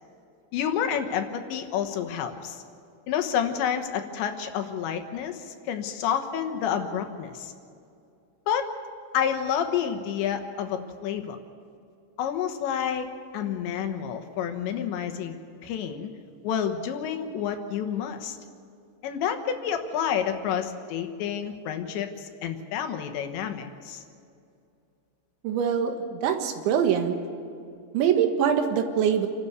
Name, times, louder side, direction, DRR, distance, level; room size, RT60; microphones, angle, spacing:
voice 1, 0.5-2.6 3.1-7.5 8.5-8.7 9.1-11.4 12.2-13.1 13.3-15.4 15.6-16.1 16.4-18.4 19.0-24.0, left 8 dB, 80° left, 6 dB, 3.4 m, -29 dB
voice 2, 25.4-27.2 27.9-29.3, right 8 dB, 85° right, 5 dB, 3.9 m, -24 dB
28.0 x 13.0 x 8.1 m, 2.5 s
omnidirectional pair, 5.2 m